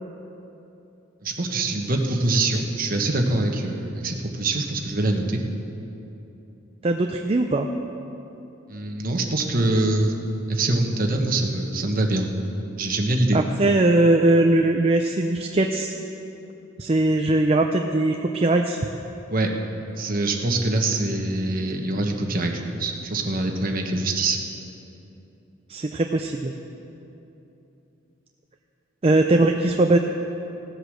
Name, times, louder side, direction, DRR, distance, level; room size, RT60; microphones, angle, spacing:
voice 1, 1.2-5.4 8.7-10.1 10.5-12.3 12.8-13.4 19.3-19.5 20.0-24.4, right 2 dB, 45° right, 3 dB, 1.2 m, -24 dB
voice 2, 6.8-7.7 13.3-15.9 16.8-18.8 25.7-26.5 29.0-30.0, right 2 dB, 30° right, 4 dB, 0.5 m, -20 dB
16.5 x 8.0 x 6.4 m, 3.0 s
head